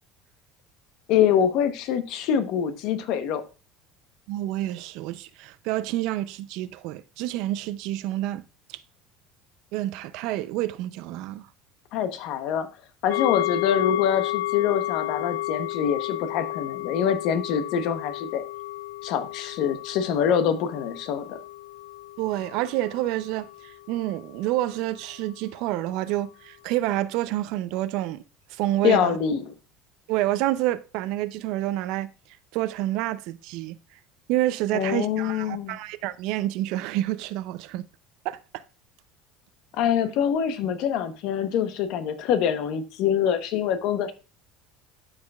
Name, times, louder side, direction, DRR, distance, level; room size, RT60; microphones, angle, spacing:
voice 1, 1.1-3.4 11.9-12.7 13.0-18.4 19.0-21.4 28.8-29.5 34.7-35.8 39.7-44.1, left 8 dB, 60° left, 1.0 m, -25 dB
voice 2, 4.3-8.4 8.7-8.8 9.7-11.5 22.2-28.2 28.5-29.2 30.1-32.1 32.5-33.8 34.3-37.9 38.2-38.6, right 15 dB, 65° right, 0.5 m, -28 dB
sound 1, 13.1-24.8 25.1-25.2, left 18 dB, 90° left, 0.4 m, -32 dB
12.5 x 4.9 x 2.4 m
cardioid pair, 145°, 0 cm